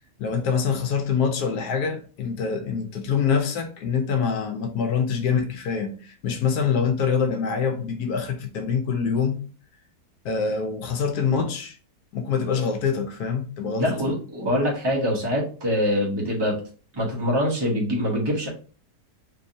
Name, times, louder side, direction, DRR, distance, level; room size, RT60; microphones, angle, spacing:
voice 1, 0.2-9.4 10.2-11.8 12.1-14.2, left 6 dB, 75° left, 1.1 m, -25 dB
voice 2, 13.8-16.6 16.9-18.5, equal, 20° right, 1.0 m, -24 dB
3.7 x 2.9 x 2.7 m
omnidirectional pair, 1.8 m